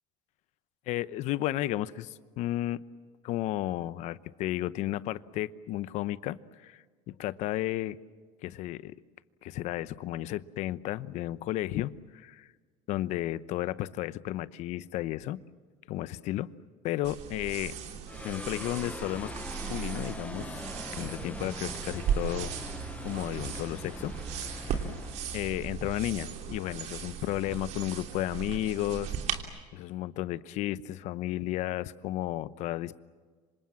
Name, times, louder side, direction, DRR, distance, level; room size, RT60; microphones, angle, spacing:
voice 1, 0.9-2.8 3.2-8.0 8.4-8.9 9.4-12.5 12.9-15.4 15.9-16.5 16.8-17.7 18.2-19.3 19.7-20.6 20.9-22.5 23.0-24.1 24.4-24.9 25.3-29.2 29.7-33.0, left 14 dB, 60° left, 16 dB, 0.9 m, -33 dB
sound 1, 17.0-29.4, right 8 dB, 55° right, 3.2 m, -37 dB
sound 2, 18.1-26.6, left 2 dB, 10° left, 0.9 m, -43 dB
27.0 x 25.5 x 7.4 m, 1.5 s
supercardioid pair, 120°, 13 cm